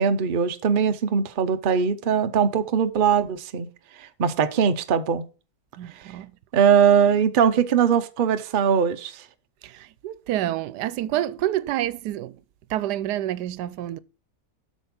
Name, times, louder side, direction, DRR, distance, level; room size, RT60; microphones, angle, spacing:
voice 1, 0.0-3.7 4.0-5.2 6.5-9.2, right 7 dB, 45° right, 0.7 m, -21 dB
voice 2, 5.8-6.3 9.6-12.4 12.7-14.0, right 13 dB, 90° right, 1.2 m, -28 dB
8.3 x 5.4 x 5.8 m
omnidirectional pair, 1.7 m